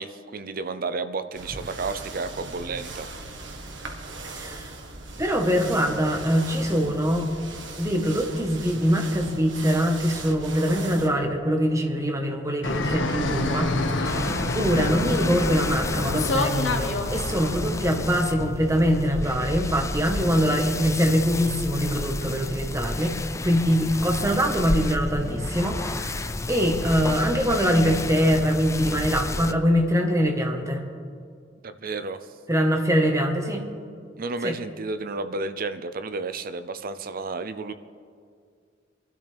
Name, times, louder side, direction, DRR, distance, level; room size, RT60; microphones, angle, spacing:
voice 1, 0.0-3.1 31.6-32.3 34.2-37.7, right 3 dB, 50° right, 11 dB, 0.6 m, -32 dB
sound 1, 1.3-11.1, right 3 dB, 75° right, 1.5 m, -39 dB
voice 2, 4.2-4.7 5.2-7.3 7.8-14.3 14.5-26.2 26.5-30.8 32.5-33.6 34.4-34.6, equal, 15° right, 2 dB, 1.4 m, -23 dB
Fixed-wing aircraft airplane, 12.6-17.8, left 2 dB, 80° left, 1.1 m, -27 dB
sound 2, 14.0-29.5, left 2 dB, 15° left, 0.4 m, -31 dB
24.5 x 12.5 x 3.5 m, 2.2 s
head